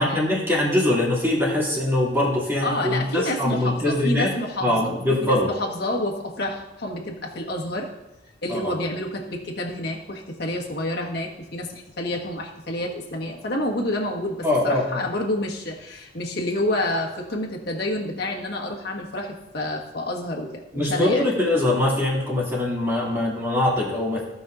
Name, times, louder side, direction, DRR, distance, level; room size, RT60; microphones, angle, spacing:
voice 1, 0.0-4.3 4.6-5.5 8.5-8.7 14.4-15.0 20.7-24.2, left 1 dB, 15° right, -5 dB, 2.4 m, -22 dB
voice 2, 2.6-5.0 5.2-7.9 8.4-21.3, left 1 dB, 60° left, -1 dB, 1.5 m, -28 dB
16.5 x 5.5 x 2.5 m, 0.95 s
head